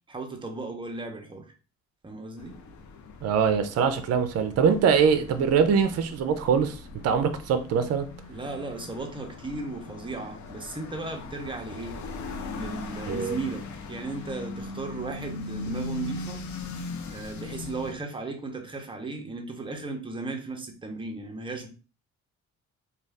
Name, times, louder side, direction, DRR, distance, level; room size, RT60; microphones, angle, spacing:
voice 1, 0.1-1.5 2.0-2.6 8.3-12.0 12.5-16.4 17.1-21.7, right 3 dB, 15° right, 0.7 m, -36 dB
sound 1, 2.4-18.0, left 3 dB, 70° left, 0.6 m, -39 dB
voice 2, 3.2-6.8 7.0-8.1 13.1-13.4, right 6 dB, 55° right, 0.5 m, -23 dB
2.5 x 2.3 x 3.3 m
cardioid pair, 90°, 30 cm